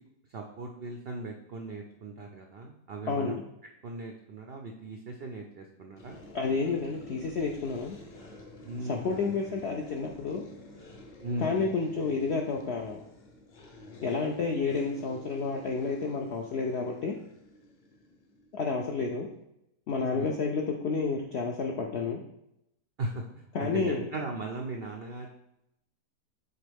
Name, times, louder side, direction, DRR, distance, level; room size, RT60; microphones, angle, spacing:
voice 1, 0.3-3.4 3.8-6.2 8.7-9.4 11.2-11.7 20.1-20.3 23.0-23.2 23.6-25.3, right 2 dB, 90° right, 3 dB, 0.5 m, -38 dB
voice 2, 3.1-3.4 6.3-8.0 8.8-10.4 11.4-13.0 14.0-17.2 18.5-19.3 19.9-22.2 23.5-24.1, left 4 dB, 75° left, 1 dB, 0.6 m, -30 dB
sound 1, 6.0-18.9, left 1 dB, 35° left, 0.8 m, -50 dB
6.8 x 4.2 x 3.4 m, 0.83 s
omnidirectional pair, 1.8 m